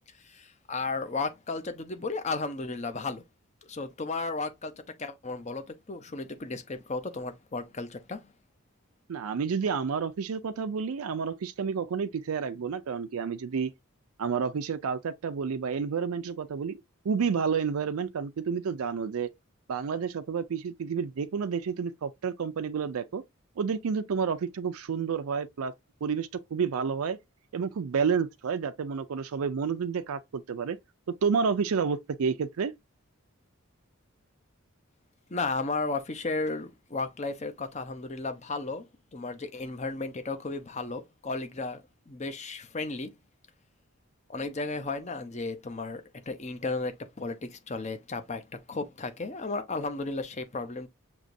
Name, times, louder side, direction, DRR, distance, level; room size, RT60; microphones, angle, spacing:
voice 1, 0.2-3.2 3.6-8.3 35.3-43.1 44.3-48.4 48.7-50.9, left 3 dB, 30° left, 0.7 m, -34 dB
voice 2, 9.1-13.7 14.2-16.8 17.0-19.3 19.7-23.2 23.6-25.7 26.0-27.2 27.5-30.8 31.2-32.7, right 6 dB, 80° right, 0.4 m, -30 dB
6.2 x 3.0 x 2.6 m
head